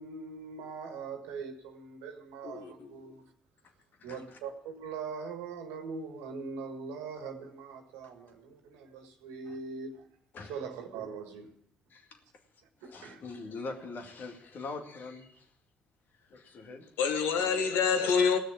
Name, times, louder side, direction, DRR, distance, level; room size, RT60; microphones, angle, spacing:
voice 1, 0.0-3.3 4.0-10.1 10.5-11.5 12.8-13.2, right 5 dB, 80° right, 1.7 m, -41 dB
voice 2, 2.4-3.0 17.0-18.4, left 6 dB, 75° left, 1.4 m, -27 dB
voice 3, 12.8-15.5 16.3-17.6, left 3 dB, 55° left, 2.1 m, -43 dB
17.0 x 6.5 x 8.8 m
hypercardioid pair, 55°, 4 cm